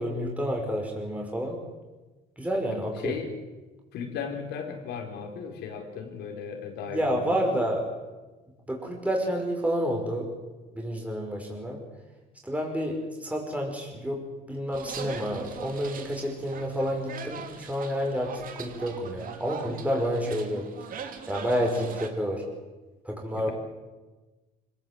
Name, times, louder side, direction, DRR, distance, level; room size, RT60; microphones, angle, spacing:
voice 1, 0.0-1.6 2.4-3.2 6.9-7.9 8.7-10.3 10.7-11.8 12.4-20.6 21.3-22.5 23.0-23.5, equal, 10° right, 0 dB, 5.3 m, -29 dB
voice 2, 3.0-3.3 3.9-7.4 23.3-23.5, left 6 dB, 80° left, 3 dB, 4.7 m, -36 dB
sound 1, 14.7-22.1, right 7 dB, 55° right, 2.7 m, -41 dB
26.0 x 17.5 x 8.1 m, 1.2 s
cardioid pair, 110°, 17 cm